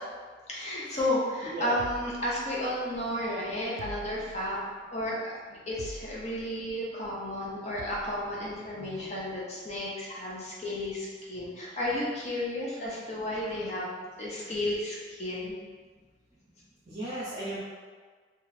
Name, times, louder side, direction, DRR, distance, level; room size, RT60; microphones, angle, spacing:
voice 1, 0.5-4.6 4.9-13.9 14.2-15.5, left 1 dB, 35° left, -5 dB, 0.8 m, -32 dB
voice 2, 1.4-1.8 8.8-9.1 16.9-17.6, right 2 dB, 30° right, -9 dB, 0.7 m, -36 dB
sound 1, 1.8-2.9 3.8-4.7 5.8-6.5 7.8-8.3, right 3 dB, 85° right, 0.3 m, -45 dB
2.9 x 2.5 x 4.0 m, 1.5 s
head